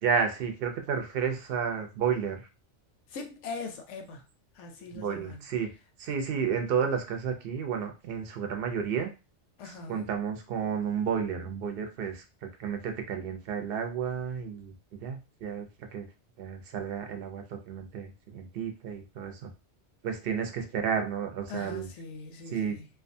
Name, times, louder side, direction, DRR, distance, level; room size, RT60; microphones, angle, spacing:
voice 1, 0.0-2.5 4.9-5.7 6.0-9.1 9.9-15.7 15.9-16.1 16.4-19.5 20.0-21.9 22.5-22.8, right 7 dB, 60° right, 0.7 m, -31 dB
voice 2, 3.1-4.2 4.5-5.4 9.6-10.0 21.5-22.9, left 4 dB, 90° left, 1.0 m, -41 dB
2.5 x 2.3 x 2.6 m
omnidirectional pair, 1.2 m